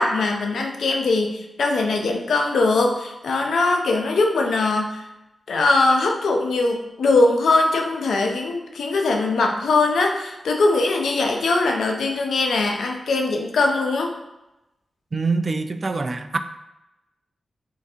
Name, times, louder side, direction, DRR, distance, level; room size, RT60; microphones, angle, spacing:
voice 1, 0.0-5.1 5.5-14.1, left 3 dB, 80° left, 2 dB, 0.5 m, -21 dB
voice 2, 15.1-16.4, right 3 dB, 50° right, 9 dB, 0.3 m, -24 dB
3.7 x 3.3 x 2.7 m, 0.94 s
cardioid pair, 45°, 0 cm